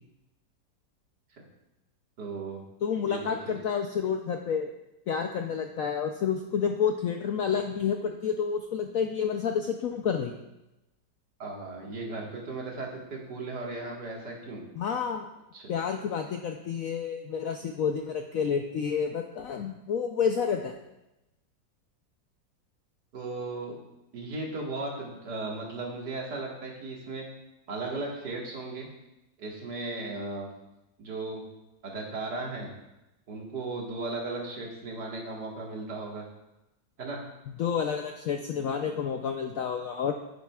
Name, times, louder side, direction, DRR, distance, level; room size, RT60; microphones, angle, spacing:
voice 1, 2.2-2.6 3.1-3.5 11.4-14.6 15.5-15.7 23.1-23.8 24.1-27.3 27.7-28.9 29.4-30.5 31.0-31.4 31.8-32.7 33.3-36.3 37.0-37.2, right 3 dB, 65° right, -2 dB, 2.2 m, -36 dB
voice 2, 2.8-4.7 5.1-10.4 14.8-15.3 15.7-20.7 37.6-40.1, left 7 dB, 70° left, 4 dB, 0.8 m, -29 dB
9.8 x 9.4 x 2.3 m, 0.93 s
omnidirectional pair, 2.0 m